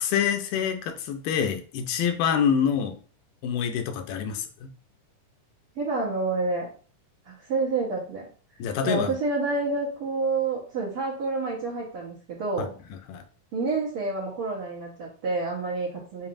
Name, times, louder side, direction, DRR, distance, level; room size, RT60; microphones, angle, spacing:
voice 1, 0.0-3.0 3.4-4.7 8.6-9.2 12.6-12.7 13.1-13.2, left 7 dB, 85° left, 6 dB, 2.2 m, -26 dB
voice 2, 5.8-6.7 7.2-8.3 8.8-12.7 13.5-16.3, right 3 dB, 60° right, -6 dB, 1.5 m, -28 dB
7.0 x 2.7 x 2.6 m, 0.38 s
omnidirectional pair, 3.9 m